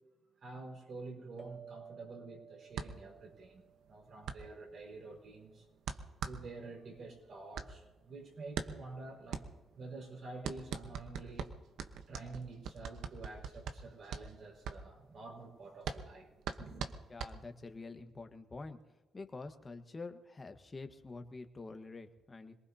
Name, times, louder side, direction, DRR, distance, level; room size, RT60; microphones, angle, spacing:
voice 1, 0.4-5.7 6.2-9.4 9.7-11.5 12.1-16.3 16.6-16.9, right 3 dB, 55° right, 0 dB, 5.0 m, -48 dB
sound 1, 1.4-4.4, right 6 dB, 30° right, 1.8 m, -54 dB
sound 2, 2.7-17.8, right 6 dB, 75° right, 1.0 m, -43 dB
voice 2, 17.1-18.8 19.1-22.6, left 3 dB, 25° left, 6 dB, 1.4 m, -47 dB
25.5 x 19.5 x 2.8 m, 1.1 s
cardioid pair, 90°, 0 cm